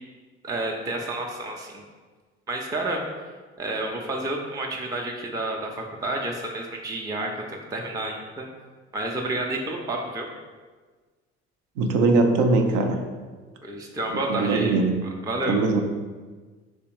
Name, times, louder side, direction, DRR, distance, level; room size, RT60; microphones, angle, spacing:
voice 1, 0.4-1.8 2.5-3.0 3.6-8.5 8.9-10.3 13.6-14.8 15.2-15.6, right 2 dB, 10° right, 0 dB, 0.4 m, -30 dB
voice 2, 11.8-13.0 14.3-14.9 15.5-15.8, right 3 dB, 70° right, 4 dB, 0.5 m, -21 dB
3.4 x 3.2 x 3.0 m, 1.4 s
hypercardioid pair, 50°, 32 cm